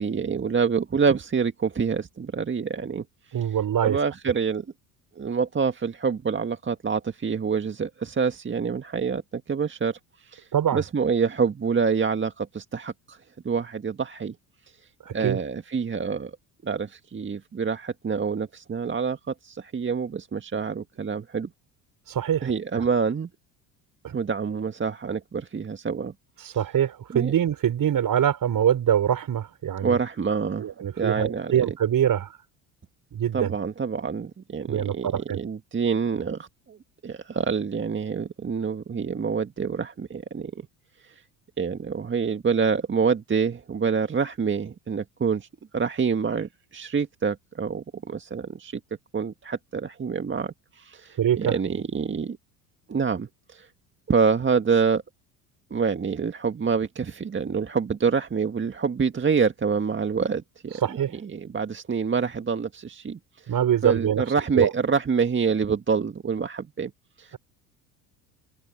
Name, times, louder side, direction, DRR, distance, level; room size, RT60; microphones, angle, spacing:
voice 1, 0.0-3.5 3.8-4.7 5.2-14.4 14.7-16.3 16.6-21.5 22.4-23.3 24.1-26.1 26.4-26.6 27.1-27.3 29.8-31.7 33.3-36.8 37.0-40.6 41.0-41.2 41.6-45.5 45.7-48.8 49.1-52.4 52.9-53.7 54.1-55.0 55.7-60.8 61.1-63.5 63.8-66.9 67.2-67.4, right 5 dB, 25° right, 1.8 m, -27 dB
voice 2, 3.3-4.0 10.5-10.8 15.0-15.4 22.1-22.9 24.0-24.2 26.4-30.0 30.6-32.3 33.1-33.6 34.7-35.4 51.2-51.5 60.8-61.1 63.5-64.2 64.6-64.7, right 9 dB, 45° right, 5.9 m, -24 dB
hypercardioid pair, 75°, 45 cm